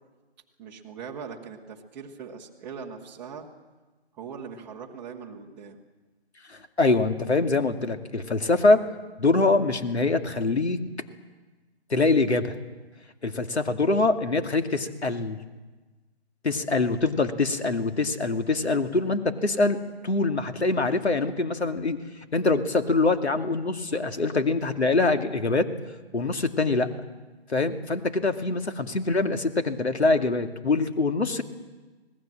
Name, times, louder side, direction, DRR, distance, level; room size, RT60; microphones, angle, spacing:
voice 1, 0.6-3.5 4.2-5.8, right 6 dB, 5° right, -3 dB, 0.9 m, -40 dB
voice 2, 6.5-8.8 9.2-10.8 11.9-12.5 13.2-15.4 16.4-19.8 20.0-22.0 22.3-25.7 26.1-26.9 27.5-31.4, left 3 dB, 85° left, 6 dB, 2.4 m, -24 dB
26.0 x 20.0 x 7.6 m, 1.2 s
figure-of-eight pair, 160°, 32 cm